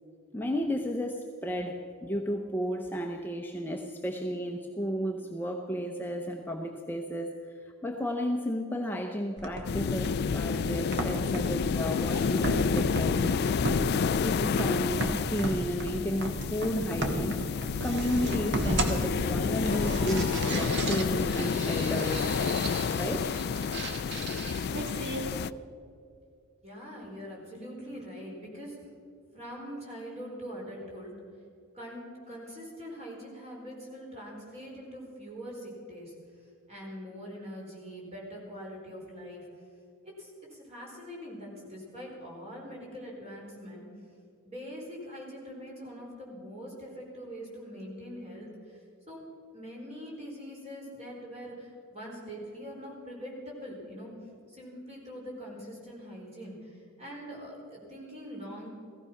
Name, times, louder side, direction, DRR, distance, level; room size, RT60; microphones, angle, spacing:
voice 1, 0.3-13.4 14.1-22.6 23.0-23.3, equal, 10° left, 2 dB, 0.7 m, -33 dB
sound 1, 9.4-25.4, right 1 dB, 50° right, 1.6 m, -35 dB
sound 2, 9.6-25.5, left 6 dB, 45° left, 0.3 m, -30 dB
voice 2, 26.6-28.8 29.3-31.1 31.7-36.1 36.7-39.5 40.0-43.9 44.4-49.2 49.5-54.1 54.5-58.7, equal, 30° right, -3 dB, 4.5 m, -43 dB
16.0 x 15.0 x 5.8 m, 2.4 s
head